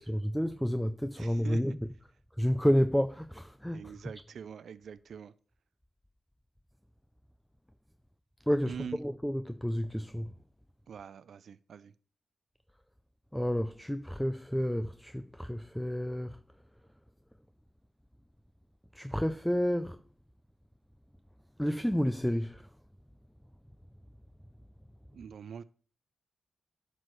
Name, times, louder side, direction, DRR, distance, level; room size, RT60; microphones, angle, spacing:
voice 1, 0.0-1.8 2.4-4.0 8.5-10.3 13.3-16.4 18.9-20.0 21.6-22.7, equal, 5° left, 0.4 m, -30 dB
voice 2, 1.2-1.6 3.7-5.3 8.7-9.0 10.9-11.9 25.1-25.6, right 7 dB, 75° right, 0.3 m, -44 dB
11.0 x 6.1 x 3.1 m
cardioid pair, 65°, 0 cm